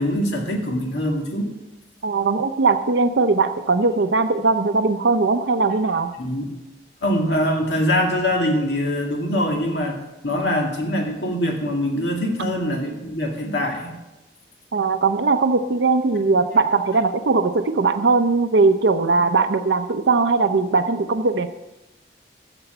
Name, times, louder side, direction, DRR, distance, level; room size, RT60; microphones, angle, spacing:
voice 1, 0.0-1.5 6.2-6.4 7.0-13.9, equal, 80° left, 1 dB, 2.3 m, -23 dB
voice 2, 2.0-6.1 14.7-21.5, right 3 dB, 85° right, 8 dB, 0.6 m, -19 dB
13.0 x 7.0 x 6.8 m, 1.0 s
head